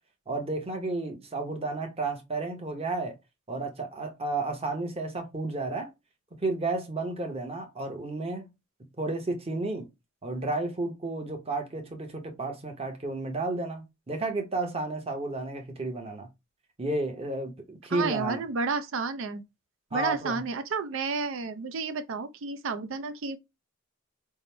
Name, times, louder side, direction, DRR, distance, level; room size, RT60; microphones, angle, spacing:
voice 1, 0.3-3.2 3.5-5.9 6.4-8.5 9.0-9.9 10.2-16.3 16.8-18.4 19.9-20.4, right 2 dB, 30° right, 0.8 m, -32 dB
voice 2, 17.9-19.4 19.9-23.4, right 4 dB, 70° right, 0.5 m, -31 dB
3.6 x 2.0 x 4.3 m
head